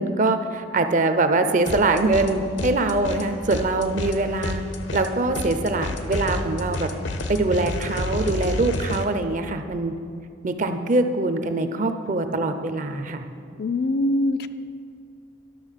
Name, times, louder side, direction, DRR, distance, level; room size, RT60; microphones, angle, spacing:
voice 1, 0.0-4.6 4.9-6.9 7.3-9.9 10.4-13.2, right 2 dB, 40° right, 8 dB, 0.6 m, -23 dB
sound 1, 1.7-2.3 2.6-9.0, left 2 dB, 70° left, 0.8 m, -30 dB
voice 2, 13.6-14.5, left 1 dB, 55° left, 11 dB, 0.4 m, -23 dB
11.5 x 6.6 x 5.7 m, 2.4 s
head